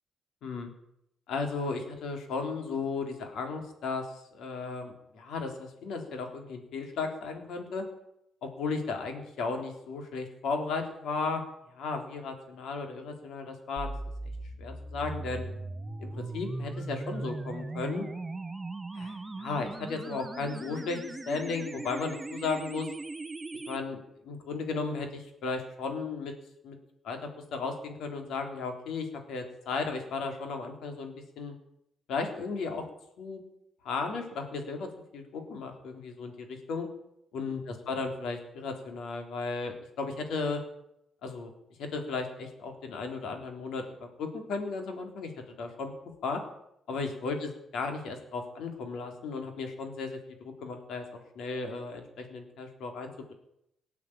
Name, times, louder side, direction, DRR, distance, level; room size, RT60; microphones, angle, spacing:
voice 1, 1.3-7.9 8.4-11.4 11.7-13.9 14.2-14.3 14.6-15.5 16.0-18.0 18.9-21.0 21.3-22.9 23.7-26.3 26.6-26.8 27.0-31.6 32.1-32.8 33.2-33.4 33.8-36.9 37.3-40.6 41.2-41.5 41.8-45.3 45.6-45.9 46.2-46.4 46.9-51.1 51.4-53.3, left 4 dB, 75° left, 5 dB, 3.6 m, -35 dB
sound 1, 13.8-23.8, right 2 dB, 15° right, 1.0 m, -39 dB
19.0 x 8.3 x 8.8 m, 0.80 s
cardioid pair, 120°, 0 cm